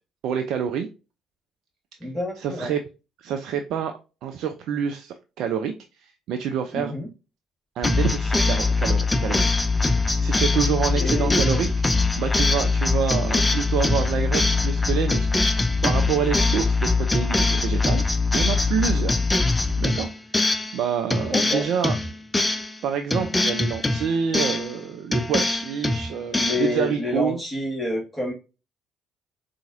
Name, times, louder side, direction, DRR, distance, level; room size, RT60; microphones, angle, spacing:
voice 1, 0.2-0.9 2.0-2.8 3.2-3.9 4.2-6.9 7.8-9.5 9.9-11.7 12.2-18.0 18.3-19.2 19.8-20.1 20.7-22.0 22.8-27.4, right 8 dB, 65° right, 6 dB, 0.3 m, -27 dB
voice 2, 2.0-2.7 6.7-7.1 10.9-11.4 21.3-21.6 26.3-28.3, left 1 dB, ahead, -5 dB, 1.5 m, -28 dB
sound 1, 7.8-20.8 21.1-22.8 23.1-24.8 25.1-26.7, left 3 dB, 20° left, 0.5 m, -22 dB
4.0 x 2.5 x 2.4 m, 0.30 s
hypercardioid pair, 50°, 0 cm